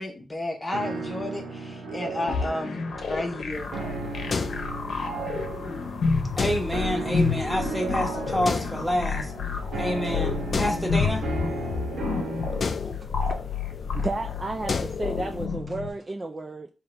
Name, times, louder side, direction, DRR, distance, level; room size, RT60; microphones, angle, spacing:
voice 1, 0.0-3.7, left 1 dB, 20° left, 0.8 m, -32 dB
sound 1, 0.7-12.7, right 3 dB, 90° right, 1.0 m, -35 dB
sound 2, 2.3-15.9, left 5 dB, 80° left, 0.8 m, -30 dB
sound 3, 3.5-15.5, left 5 dB, 50° left, 0.4 m, -36 dB
voice 2, 6.4-9.3 9.8-11.2, equal, ahead, 1.1 m, -28 dB
voice 3, 13.9-16.7, right 2 dB, 25° right, 0.3 m, -33 dB
3.7 x 2.9 x 4.3 m
wide cardioid pair, 115°, 0 cm